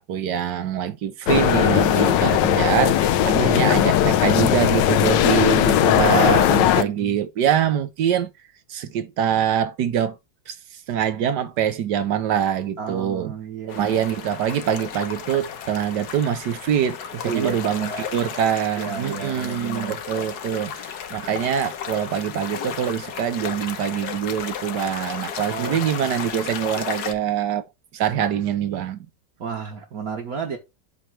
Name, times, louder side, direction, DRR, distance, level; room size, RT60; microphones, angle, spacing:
voice 1, 0.0-8.3 8.7-10.2 10.5-10.6 10.9-13.3 13.7-27.6 27.9-29.0, right 9 dB, 70° right, 1.4 m, -24 dB
sound 1, 1.3-6.8, left 11 dB, 80° left, 1.3 m, -18 dB
voice 2, 3.2-3.7 5.3-7.2 12.8-14.0 17.2-18.3 18.8-20.0 25.5-26.1 29.4-30.6, right 6 dB, 55° right, 1.7 m, -33 dB
sound 2, 13.7-27.1, left 8 dB, 65° left, 1.4 m, -34 dB
7.9 x 3.1 x 6.2 m
omnidirectional pair, 1.9 m